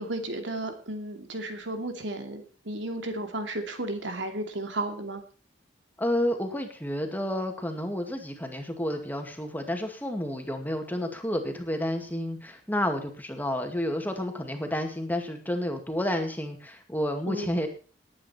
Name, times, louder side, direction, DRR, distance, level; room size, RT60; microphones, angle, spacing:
voice 1, 0.0-5.2 17.3-17.5, right 1 dB, 80° right, 5 dB, 2.6 m, -33 dB
voice 2, 6.0-17.7, left 1 dB, 10° left, 4 dB, 2.2 m, -30 dB
19.5 x 8.8 x 4.5 m, 0.37 s
head